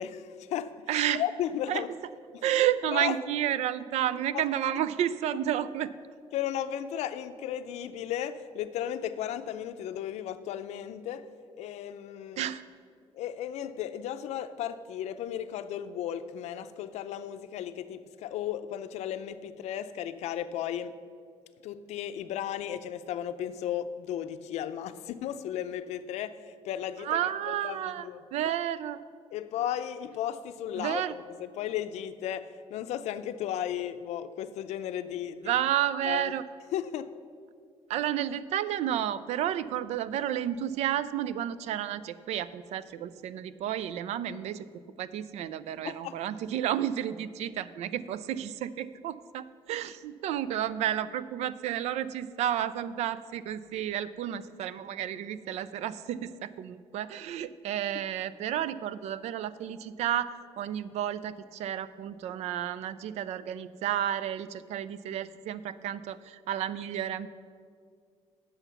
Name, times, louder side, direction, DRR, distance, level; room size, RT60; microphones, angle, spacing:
voice 1, 0.0-0.9 1.1-1.9 2.3-2.4 2.9-3.1 6.3-11.3 11.6-12.5 13.1-21.0 21.6-27.1 27.5-27.8 28.0-28.5 29.3-31.0 31.4-35.5 36.0-36.3 36.7-37.1 45.8-46.2, left 10 dB, 85° left, 11 dB, 0.5 m, -35 dB
voice 2, 0.9-1.2 1.7-1.9 2.4-5.9 12.4-12.6 27.0-29.0 30.8-31.2 35.4-36.5 37.9-44.7 45.0-67.3, right 11 dB, 80° right, 16 dB, 0.4 m, -31 dB
9.9 x 6.9 x 5.7 m, 2.2 s
cardioid pair, 140°, 11 cm